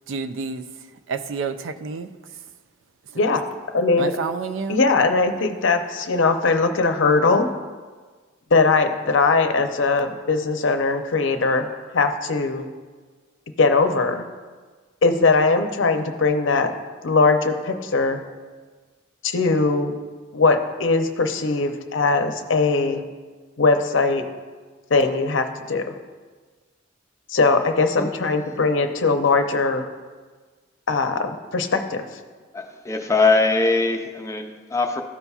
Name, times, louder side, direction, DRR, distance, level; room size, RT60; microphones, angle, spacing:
voice 1, 0.1-0.6 1.1-2.1 3.1-3.2 4.0-4.8, right 5 dB, 70° right, 10 dB, 0.4 m, -29 dB
voice 2, 3.7-4.1 4.7-7.5 8.5-11.7 11.9-12.7 13.6-14.2 15.0-16.7 17.0-18.2 19.2-19.9 20.3-23.0 23.6-24.2 24.9-26.0 27.3-29.9 30.9-32.0, left 3 dB, 70° left, 6 dB, 0.6 m, -20 dB
voice 3, 32.5-35.0, left 3 dB, 15° left, 3 dB, 0.5 m, -21 dB
13.5 x 5.5 x 2.4 m, 1.4 s
head